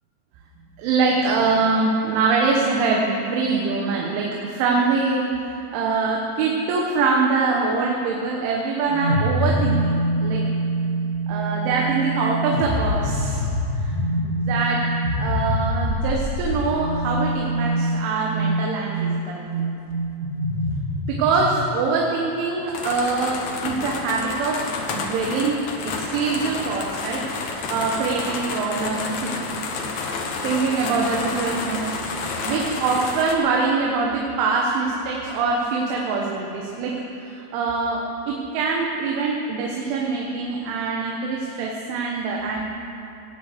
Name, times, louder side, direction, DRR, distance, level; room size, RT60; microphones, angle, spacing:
voice 1, 0.8-10.4 11.3-13.4 13.8-14.8 15.2-19.7 21.1-25.6 25.9-29.3 30.4-36.9 37.2-38.0 38.3-42.6, right 4 dB, 85° right, -1 dB, 3.7 m, -24 dB
sound 1, 8.9-21.7, right 1 dB, 30° right, 1.1 m, -25 dB
sound 2, 22.7-33.3, left 4 dB, 75° left, 1.8 m, -30 dB
19.0 x 8.0 x 8.1 m, 2.8 s
omnidirectional pair, 5.4 m